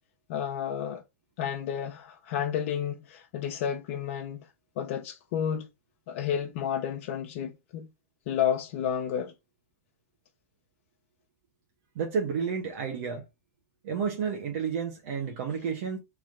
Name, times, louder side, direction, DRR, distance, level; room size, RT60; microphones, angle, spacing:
voice 1, 0.3-1.0 1.4-4.5 4.8-5.7 6.1-7.9 8.3-9.3, left 8 dB, 60° left, 0.7 m, -31 dB
voice 2, 11.9-13.2 13.8-16.0, right 6 dB, 65° right, 1.3 m, -31 dB
3.6 x 3.0 x 3.7 m
hypercardioid pair, 115°, 8 cm